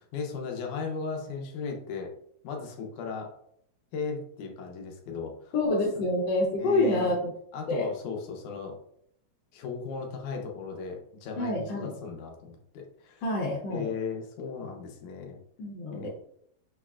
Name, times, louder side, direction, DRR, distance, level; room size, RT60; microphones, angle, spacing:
voice 1, 0.0-2.1 2.4-3.3 3.9-5.5 6.0-6.1 6.6-7.1 7.5-8.8 9.5-13.2 13.7-15.4 15.9-16.1, left 5 dB, 85° left, 1 dB, 2.3 m, -36 dB
voice 2, 5.5-7.3 7.7-7.9 11.4-11.9 13.2-13.9 15.6-16.1, left 2 dB, 70° left, -3 dB, 1.7 m, -27 dB
6.3 x 3.2 x 2.4 m, 0.70 s
omnidirectional pair, 3.3 m